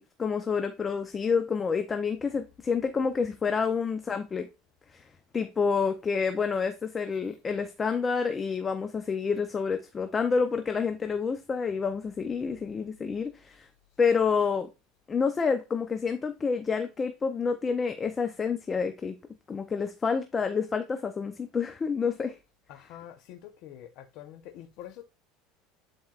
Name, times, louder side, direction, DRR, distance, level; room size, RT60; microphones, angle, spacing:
voice 1, 0.0-4.5 4.9-5.0 5.3-13.7 14.0-14.7 15.1-19.2 19.5-22.3, left 5 dB, 20° left, 0.6 m, -28 dB
voice 2, 22.7-25.0, left 11 dB, 60° left, 0.8 m, -46 dB
10.5 x 4.4 x 2.4 m
supercardioid pair, 125°, 0 cm